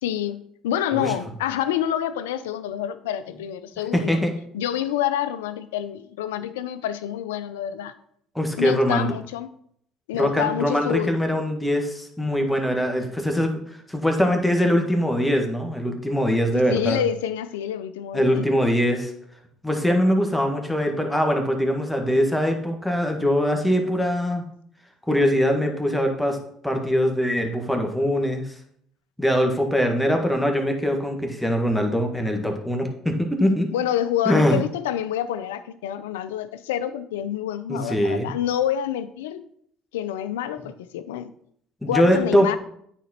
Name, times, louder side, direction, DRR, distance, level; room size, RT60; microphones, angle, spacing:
voice 1, 0.0-4.2 4.5-7.9 8.6-9.5 10.1-11.1 16.7-18.5 33.7-39.4 39.9-41.3 41.9-42.6, left 10 dB, 90° left, 13 dB, 0.5 m, -27 dB
voice 2, 3.9-4.3 8.3-9.1 10.1-13.6 13.9-17.0 18.1-19.1 19.6-24.4 25.1-26.4 26.6-28.5 29.2-33.7 34.2-34.6 37.7-38.3 41.8-42.5, equal, 5° left, 3 dB, 1.7 m, -22 dB
9.2 x 4.2 x 4.3 m, 0.67 s
hypercardioid pair, 70°, 0 cm